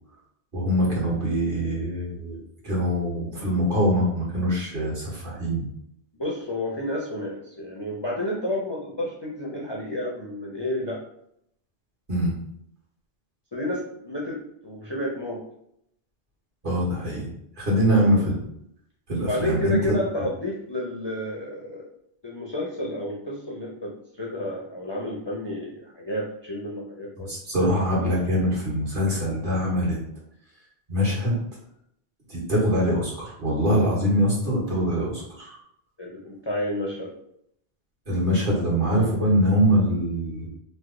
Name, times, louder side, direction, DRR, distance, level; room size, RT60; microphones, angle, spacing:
voice 1, 0.5-2.4 2.6-5.6 12.1-12.3 16.6-17.3 17.6-18.4 19.1-20.0 27.2-30.0 30.9-31.4 32.3-35.5 38.1-40.5, equal, 55° right, -5 dB, 1.3 m, -23 dB
voice 2, 6.2-11.0 13.5-15.4 17.9-18.2 19.3-21.9 22.2-27.3 36.0-37.1, left 1 dB, 35° left, -4 dB, 0.4 m, -31 dB
3.1 x 2.0 x 3.7 m, 0.73 s
omnidirectional pair, 1.1 m